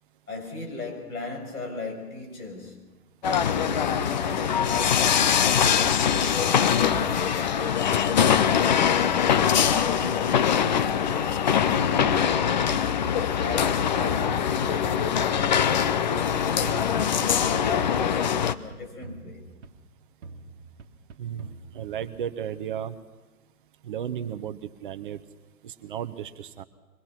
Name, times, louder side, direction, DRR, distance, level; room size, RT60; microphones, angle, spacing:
voice 1, 0.3-2.8 3.4-7.4 8.0-10.5 11.1-12.8 13.4-15.8 16.1-19.4, left 3 dB, 75° left, 6.6 m, -37 dB
sound 1, 3.2-18.5, left 8 dB, 30° left, 0.6 m, -23 dB
sound 2, 3.4-5.5 5.8-8.0 8.2-10.3 10.6-12.7 13.0-15.0 15.4-17.5 17.8-19.9 20.2-22.3, right 3 dB, 50° right, 1.8 m, -45 dB
voice 2, 21.7-22.9 23.8-25.2 25.6-26.6, right 9 dB, 35° right, 1.0 m, -34 dB
23.0 x 21.0 x 6.0 m
hypercardioid pair, 140°, 45 cm